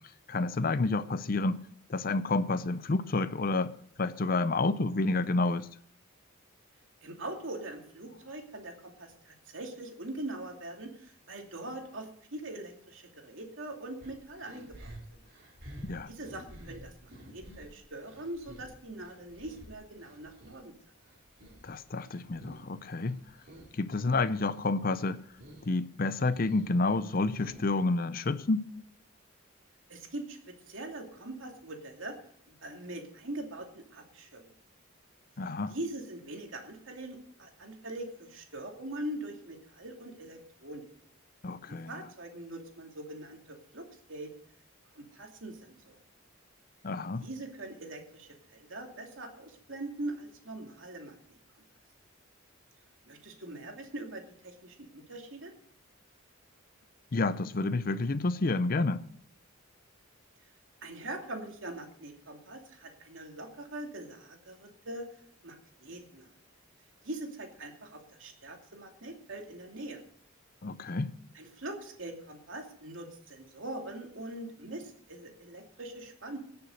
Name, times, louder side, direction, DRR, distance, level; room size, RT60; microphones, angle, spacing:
voice 1, 0.3-1.6 1.9-3.7 4.0-5.7 15.8-16.1 21.6-23.2 23.7-25.2 25.7-28.6 35.4-35.7 41.4-41.9 46.8-47.3 57.1-59.0 70.6-71.1, left 3 dB, 45° left, 0.5 m, -29 dB
voice 2, 7.0-15.2 16.1-20.7 29.9-32.2 32.5-34.5 35.7-40.8 41.7-44.3 44.9-46.0 47.2-51.4 53.1-55.5 60.8-65.1 65.4-66.3 67.0-70.0 71.3-76.4, right 1 dB, 65° right, 2.7 m, -42 dB
sound 1, 14.0-20.6 21.0-22.8 23.0-23.8 24.1-24.7 25.1-25.7 26.0-27.9, right 1 dB, 45° right, 3.1 m, -50 dB
17.5 x 7.0 x 6.5 m
head